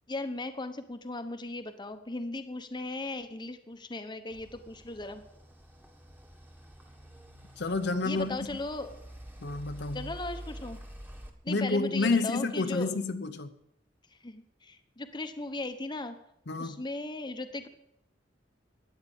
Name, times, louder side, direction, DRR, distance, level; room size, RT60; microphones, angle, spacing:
voice 1, 0.1-5.2 8.0-9.0 9.9-10.8 11.4-13.0 14.2-16.2 16.6-17.7, left 2 dB, 25° left, 1.0 m, -37 dB
sound 1, 4.3-11.3, equal, 10° right, 1.6 m, -48 dB
voice 2, 7.6-8.4 9.4-10.2 11.5-13.5 16.5-16.8, left 3 dB, 65° left, 0.9 m, -29 dB
13.5 x 9.6 x 7.1 m
head